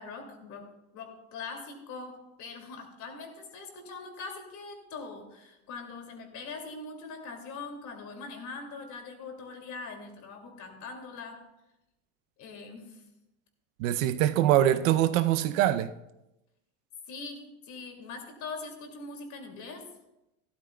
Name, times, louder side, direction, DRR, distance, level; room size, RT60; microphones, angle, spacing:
voice 1, 0.0-11.4 12.4-13.1 17.0-19.9, left 4 dB, 45° left, 2.6 m, -42 dB
voice 2, 13.8-15.9, right 12 dB, 65° right, 0.7 m, -23 dB
15.0 x 13.0 x 2.3 m
supercardioid pair, 140°, 42 cm